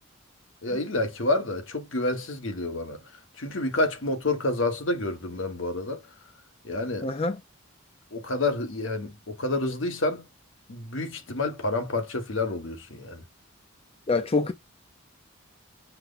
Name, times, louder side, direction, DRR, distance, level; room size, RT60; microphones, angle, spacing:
voice 1, 0.6-3.0 3.4-6.0 6.6-7.1 8.1-10.2 10.7-13.2, left 2 dB, 70° left, 1.3 m, -28 dB
voice 2, 7.0-7.4 14.1-14.5, left 3 dB, 30° left, 0.5 m, -25 dB
5.9 x 2.2 x 3.9 m
head